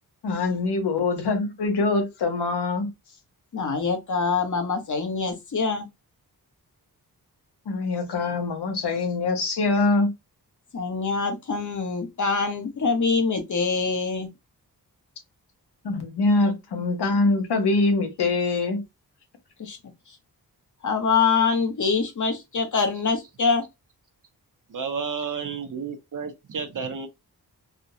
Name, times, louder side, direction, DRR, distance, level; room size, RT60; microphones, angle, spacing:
voice 1, 0.2-2.9 7.7-10.1 15.8-18.8, left 3 dB, 85° left, 1.1 m, -24 dB
voice 2, 3.5-5.9 10.7-14.3 19.6-19.8 20.8-23.6, left 5 dB, 50° left, 1.0 m, -24 dB
voice 3, 24.7-27.1, right 5 dB, 50° right, 0.9 m, -31 dB
3.6 x 2.3 x 2.8 m
wide cardioid pair, 110°, 39 cm